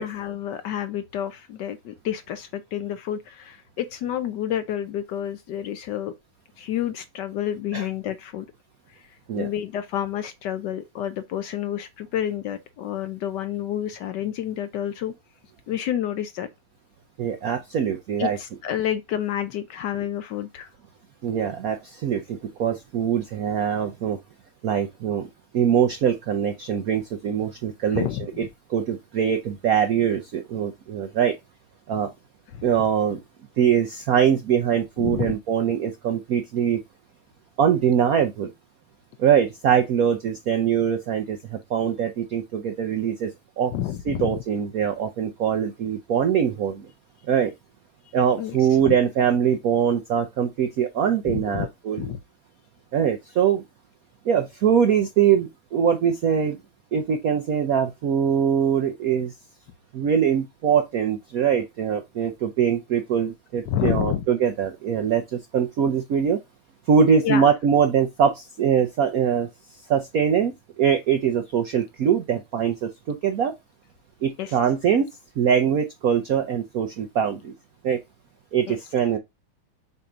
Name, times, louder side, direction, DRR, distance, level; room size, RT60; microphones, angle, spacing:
voice 1, 0.0-6.1 6.6-8.5 8.9-15.1 15.7-16.5 18.2-20.7 27.9-28.3 32.5-32.7 35.0-35.4 43.7-44.4 48.4-48.9 51.3-51.7 52.0-52.2 63.7-64.3 67.2-67.5 74.4-74.6 78.7-78.8, left 10 dB, 70° left, 1.0 m, -29 dB
voice 2, 17.2-18.4 21.2-24.2 24.6-25.3 25.5-28.0 28.7-31.4 31.9-32.1 32.6-33.2 33.6-36.8 37.6-38.5 39.2-43.3 43.6-43.7 44.1-46.9 47.3-47.5 48.1-52.1 52.9-53.6 54.2-56.6 56.9-59.3 59.9-66.4 66.9-69.5 69.9-73.5 74.2-75.0 75.4-77.5 77.8-78.0 78.5-79.2, right 8 dB, 75° right, 0.8 m, -22 dB
6.8 x 2.8 x 4.9 m
omnidirectional pair, 2.4 m